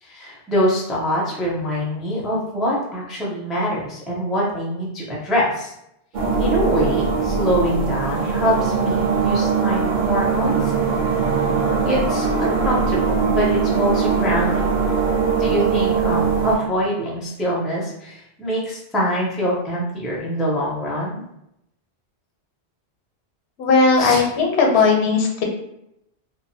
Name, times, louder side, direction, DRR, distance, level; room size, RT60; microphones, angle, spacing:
voice 1, 0.0-5.7 6.4-10.7 11.9-14.6 15.4-21.2 23.9-24.3 24.7-24.9, equal, ahead, -4 dB, 0.4 m, -24 dB
sound 1, 6.1-16.6, right 5 dB, 55° right, 0.7 m, -21 dB
voice 2, 23.6-25.4, left 4 dB, 80° left, 1 dB, 0.8 m, -17 dB
2.7 x 2.1 x 2.6 m, 0.81 s
omnidirectional pair, 1.1 m